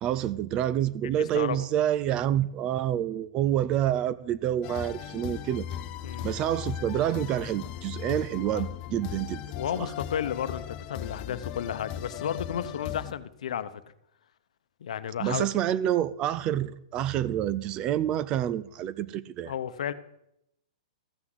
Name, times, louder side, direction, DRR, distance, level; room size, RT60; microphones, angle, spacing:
voice 1, 0.0-5.7 6.2-9.4 9.7-9.9 15.2-19.5, right 11 dB, 25° right, 0.4 m, -28 dB
voice 2, 1.2-1.7 6.0-6.3 8.5-8.7 9.5-13.8 14.8-15.5 19.4-19.9, left 9 dB, 70° left, 0.9 m, -33 dB
sound 1, 4.6-13.1, left 11 dB, 25° left, 0.6 m, -37 dB
14.5 x 6.1 x 8.0 m
hypercardioid pair, 165°, 4 cm